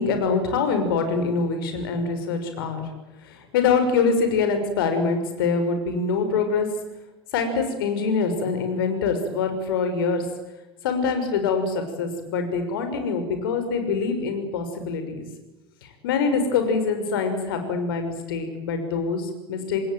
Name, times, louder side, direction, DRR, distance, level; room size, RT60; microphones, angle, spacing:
voice 1, 0.0-2.8 3.2-6.7 7.3-10.2 10.8-15.3 16.0-19.8, left 5 dB, 60° left, 7 dB, 6.1 m, -24 dB
27.0 x 20.0 x 9.3 m, 0.97 s
figure-of-eight pair, 75°, 13 cm